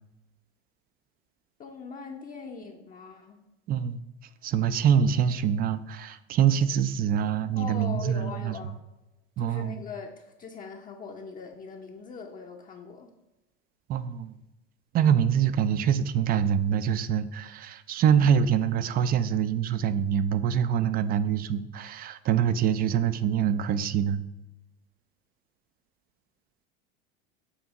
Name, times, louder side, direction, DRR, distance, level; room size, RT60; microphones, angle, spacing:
voice 1, 1.6-3.4 7.6-8.8 9.4-13.1, left 5 dB, 25° left, 2 dB, 0.6 m, -41 dB
voice 2, 3.7-4.0 4.4-8.6 9.4-9.8 13.9-14.4 14.9-24.2, right 8 dB, 30° right, 14 dB, 0.4 m, -25 dB
7.1 x 2.7 x 5.2 m, 1.0 s
hypercardioid pair, 95°, 31 cm